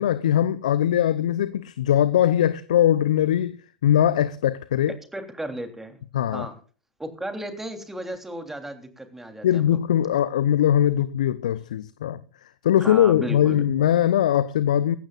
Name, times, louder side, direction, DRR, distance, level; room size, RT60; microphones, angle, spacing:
voice 1, 0.0-5.0 6.1-6.5 9.4-12.2 12.6-15.0, left 11 dB, 70° left, 0.7 m, -21 dB
voice 2, 5.1-6.0 6.3-6.6 7.0-9.8 12.8-13.7, right 1 dB, 10° right, 3.3 m, -34 dB
19.5 x 15.0 x 2.5 m
figure-of-eight pair, 80°, 4 cm